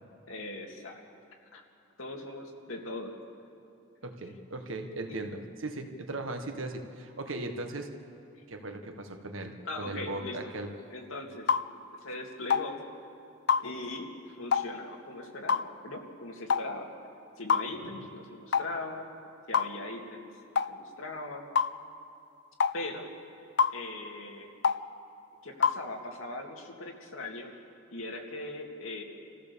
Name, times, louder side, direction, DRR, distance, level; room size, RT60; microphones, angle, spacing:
voice 1, 0.3-1.0 1.5-1.6 2.0-3.1 9.6-10.4 10.9-11.5 12.0-12.8 13.6-16.9 17.4-19.1 19.5-20.3 20.7-21.5 22.7-23.1 23.7-24.5 25.4-27.5 27.9-29.0, left 2 dB, 85° left, 1 dB, 2.3 m, -40 dB
voice 2, 4.0-7.9 8.5-10.7 17.8-18.1, right 2 dB, 80° right, 5 dB, 1.6 m, -38 dB
sound 1, 11.5-11.7 12.5-12.7 13.5-13.7 14.5-14.7 15.5-15.7 16.5-16.7 17.5-17.7 18.5-18.7 19.5-19.7 20.6-20.7 21.6-21.7 22.6-22.8 23.6-23.8 24.6-24.8 25.6-25.8, left 6 dB, 55° left, 0.5 m, -25 dB
26.5 x 15.0 x 7.0 m, 2.5 s
head